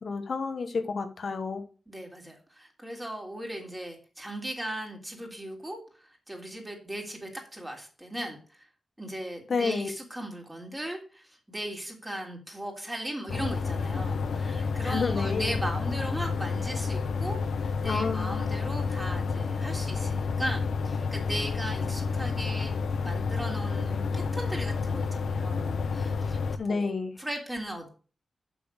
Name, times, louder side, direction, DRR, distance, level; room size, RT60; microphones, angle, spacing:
voice 1, 0.0-1.6 9.5-9.9 14.8-15.5 17.8-18.5 26.6-27.1, left 4 dB, 60° left, 1.1 m, -30 dB
voice 2, 1.9-8.7 9.0-22.7 23.0-26.4 26.6-26.9 27.2-27.9, right 1 dB, 10° right, 3.2 m, -37 dB
sound 1, 13.3-26.6, left 4 dB, 85° left, 0.8 m, -30 dB
7.0 x 6.1 x 6.2 m
cardioid pair, 90°, 0 cm